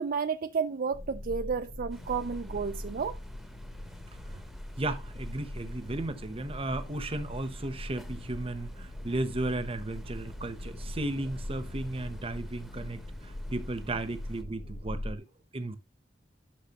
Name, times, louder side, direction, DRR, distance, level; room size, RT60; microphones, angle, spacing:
voice 1, 0.0-3.2, right 5 dB, 50° right, 0.4 m, -31 dB
sound 1, 0.9-15.2, left 1 dB, 40° left, 0.8 m, -41 dB
sound 2, 1.9-14.4, equal, ahead, 0.9 m, -53 dB
voice 2, 4.8-15.2 15.5-15.8, right 2 dB, 30° right, 0.9 m, -35 dB
12.0 x 6.1 x 3.0 m
head